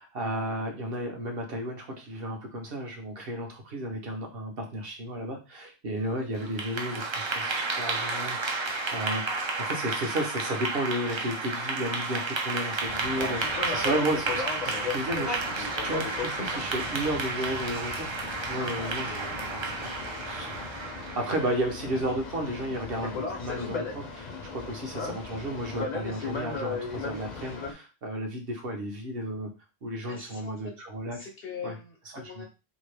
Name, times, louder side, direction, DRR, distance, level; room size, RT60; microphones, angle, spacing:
voice 1, 0.0-15.4 15.8-19.9 20.2-20.8 21.2-29.5 29.8-31.2 31.6-31.7 32.1-32.4, right 1 dB, 65° right, 2 dB, 1.1 m, -33 dB
Clapping / Applause, 6.4-21.6, right 3 dB, 40° right, 0.4 m, -32 dB
Boat Water vehicle, 12.8-27.7, left 4 dB, 45° left, 0.8 m, -37 dB
voice 2, 30.0-30.7 31.1-32.5, left 3 dB, 65° left, 1 dB, 1.0 m, -40 dB
3.0 x 2.8 x 3.3 m, 0.30 s
omnidirectional pair, 1.1 m